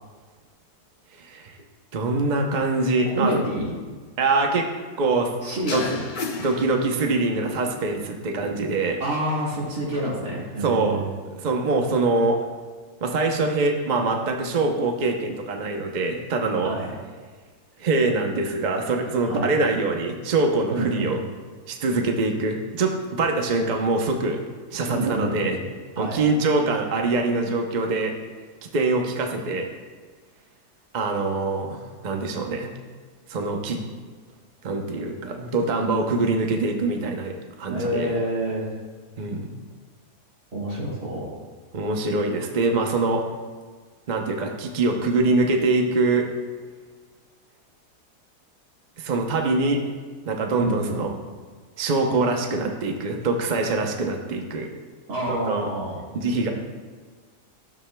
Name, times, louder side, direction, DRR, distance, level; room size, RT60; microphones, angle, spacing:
voice 1, 1.1-1.6 1.9-3.3 4.2-4.7 5.0-5.3 5.7-5.9 6.4-9.0 10.6-12.4 13.0-16.7 17.8-21.2 21.7-24.4 24.7-25.6 26.0-28.1 28.7-29.7 30.9-32.7 33.3-33.8 34.6-38.2 39.2-39.5 41.7-43.2 44.1-46.3 49.0-49.8 50.2-51.1 51.8-54.7 55.3-55.7 56.1-56.5, right 3 dB, 45° right, 2 dB, 0.6 m, -24 dB
voice 2, 3.1-3.7 5.4-6.0 9.0-11.0 16.6-16.9 19.3-19.5 20.7-21.1 24.9-25.5 26.0-26.2 37.7-38.7 40.5-41.4 50.6-51.0 55.1-56.0, right 1 dB, 65° right, -5 dB, 2.4 m, -28 dB
sound 1, 5.7-7.4, left 4 dB, 80° left, 0.4 m, -33 dB
13.0 x 7.3 x 2.2 m, 1.5 s
omnidirectional pair, 1.7 m